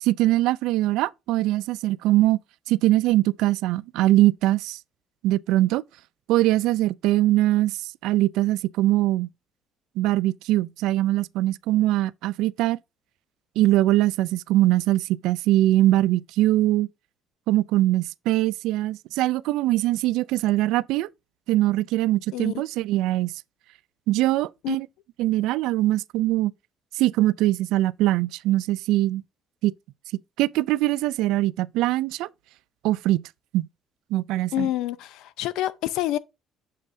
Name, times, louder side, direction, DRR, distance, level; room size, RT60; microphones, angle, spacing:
voice 1, 0.0-2.4 2.7-4.8 5.2-5.8 6.3-9.3 10.0-12.8 13.6-16.9 17.5-21.1 21.5-23.3 24.1-24.9 25.2-26.5 27.0-29.2 29.6-29.7 30.1-32.3 32.8-33.2 33.5-33.7 34.1-34.7, right 15 dB, 85° right, 0.3 m, -22 dB
voice 2, 22.3-22.6 24.6-24.8 34.5-36.2, left 13 dB, 85° left, 0.5 m, -27 dB
7.4 x 6.2 x 2.6 m
cardioid pair, 165°, 0 cm